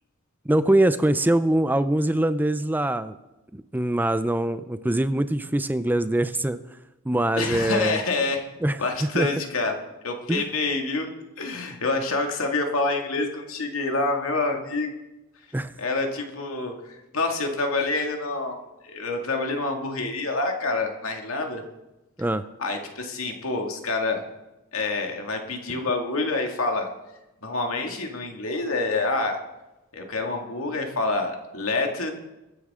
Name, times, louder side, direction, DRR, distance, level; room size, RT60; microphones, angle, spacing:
voice 1, 0.5-3.2 3.5-6.6 7.1-8.0 8.6-8.8 9.1-9.3 10.3-10.5 15.5-15.7 22.2-22.4, right 1 dB, 10° right, 13 dB, 0.4 m, -23 dB
voice 2, 7.4-8.5 8.8-9.8 10.0-11.1 11.4-15.0 15.8-18.6 18.8-21.6 22.6-24.2 24.7-26.9 27.4-29.4 29.9-32.1, left 3 dB, 75° left, 3 dB, 2.2 m, -27 dB
23.5 x 9.7 x 3.7 m, 1.0 s
head